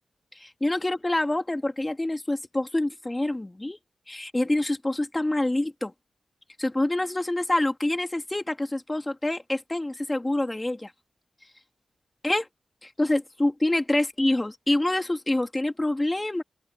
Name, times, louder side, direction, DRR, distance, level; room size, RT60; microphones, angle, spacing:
voice 1, 0.4-3.8 4.1-5.9 6.6-10.9 12.2-12.5 12.8-16.4, left 1 dB, 15° left, 2.6 m, -26 dB
open air
wide cardioid pair, 135°, 0 cm